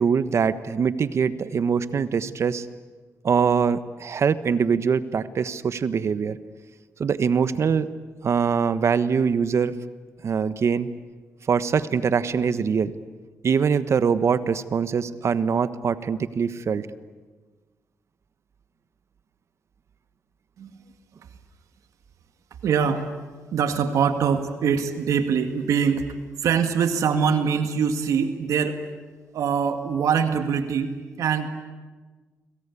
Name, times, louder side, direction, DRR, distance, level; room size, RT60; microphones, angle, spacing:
voice 1, 0.0-2.6 3.2-6.4 7.0-7.9 8.2-9.7 10.2-10.9 11.5-12.9 13.4-16.9, right 6 dB, 60° right, 13 dB, 1.3 m, -23 dB
voice 2, 22.6-23.1 23.5-26.1 26.4-28.8 29.3-31.5, right 7 dB, 85° right, 8 dB, 2.1 m, -23 dB
30.0 x 23.0 x 8.5 m, 1.3 s
cardioid pair, 80°, 5 cm